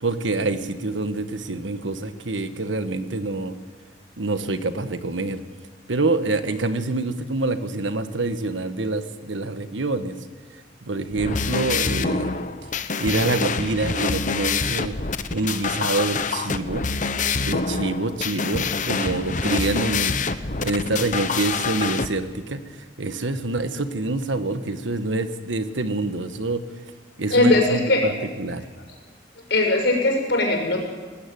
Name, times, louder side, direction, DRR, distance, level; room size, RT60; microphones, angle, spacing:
voice 1, 0.0-3.5 4.2-5.4 5.9-10.1 10.9-12.4 13.0-14.9 15.3-16.8 17.4-20.1 20.6-22.6 23.0-26.6 27.2-28.6, right 2 dB, 85° right, 10 dB, 1.5 m, -26 dB
sound 1, 11.1-22.1, left 5 dB, 45° left, 1.0 m, -26 dB
voice 2, 27.3-28.0 29.5-30.8, left 2 dB, 65° left, 1 dB, 6.1 m, -19 dB
20.5 x 17.5 x 9.4 m, 1.5 s
head